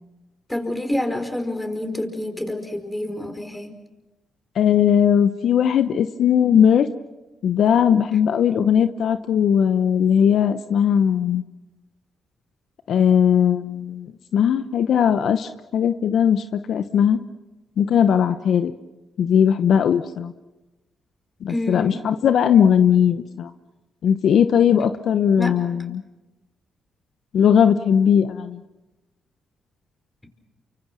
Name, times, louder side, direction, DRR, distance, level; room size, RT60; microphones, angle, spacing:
voice 1, 0.5-3.7 21.5-22.0 25.4-25.6, left 1 dB, 10° left, 6 dB, 5.0 m, -27 dB
voice 2, 4.6-6.9 7.4-11.4 12.9-14.1 14.3-17.2 17.8-18.7 19.2-20.3 21.4-23.5 24.0-26.0 27.3-28.6, left 8 dB, 70° left, 10 dB, 0.9 m, -18 dB
29.5 x 24.5 x 6.2 m, 1.1 s
supercardioid pair, 60°, 0 cm